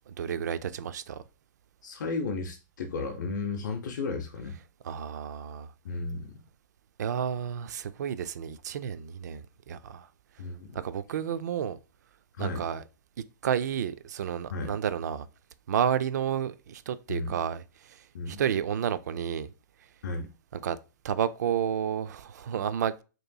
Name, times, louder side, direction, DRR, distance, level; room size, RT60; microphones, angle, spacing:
voice 1, 0.1-1.2 4.8-5.7 7.0-10.1 10.7-11.8 12.4-12.8 13.4-15.3 15.7-19.5 20.6-20.8 21.0-23.0, right 8 dB, 60° right, 0.4 m, -31 dB
voice 2, 1.8-4.6 5.8-6.4 10.4-10.8 12.4-12.7 14.5-14.8 17.1-17.4 18.1-18.4 20.0-20.3, left 3 dB, 70° left, 0.6 m, -34 dB
5.2 x 3.0 x 2.2 m
hypercardioid pair, 175°, 10 cm